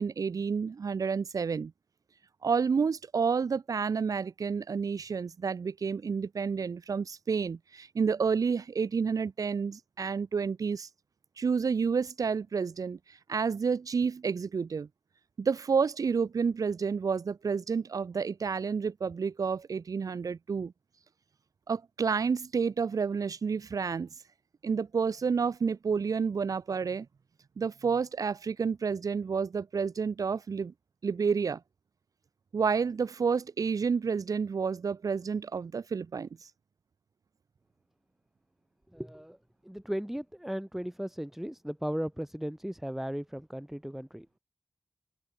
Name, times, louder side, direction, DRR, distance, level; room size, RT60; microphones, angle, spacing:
voice 1, 0.0-1.7 2.4-10.9 11.4-14.9 15.4-20.7 21.7-24.1 24.6-27.1 27.6-30.7 31.0-31.6 32.5-36.5, right 5 dB, 75° right, 1.2 m, -30 dB
voice 2, 38.9-39.4 39.6-44.4, equal, 5° right, 1.6 m, -36 dB
open air
cardioid pair, 50°, 6 cm